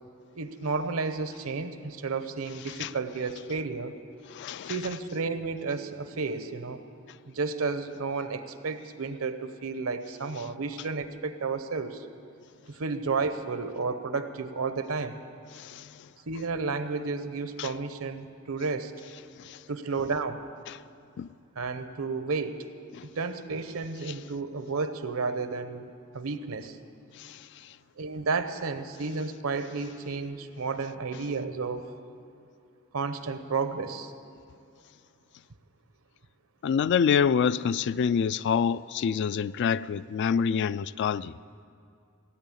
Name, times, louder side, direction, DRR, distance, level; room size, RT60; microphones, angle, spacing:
voice 1, 0.3-3.9 4.6-6.8 7.3-12.1 12.7-15.2 16.3-18.9 19.7-20.4 21.6-22.6 23.0-26.8 28.0-31.8 32.9-34.1, right 4 dB, 75° right, 0.8 m, -32 dB
voice 2, 4.3-4.7 17.6-17.7 21.2-21.3 36.6-41.3, left 7 dB, 55° left, 0.3 m, -26 dB
17.0 x 9.0 x 8.5 m
head